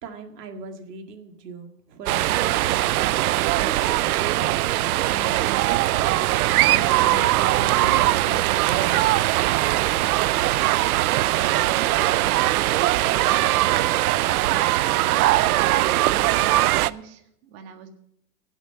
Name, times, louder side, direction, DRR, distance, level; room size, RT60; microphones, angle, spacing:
voice 1, 0.0-4.6 4.9-6.3 6.6-9.1, right 3 dB, 85° right, 5 dB, 2.1 m, -38 dB
sound 1, 2.1-16.9, right 16 dB, 65° right, 0.5 m, -21 dB
voice 2, 11.1-12.4 14.7-17.9, right 6 dB, 40° right, 6 dB, 1.7 m, -42 dB
16.0 x 8.1 x 5.6 m, 0.74 s
supercardioid pair, 165°, 47 cm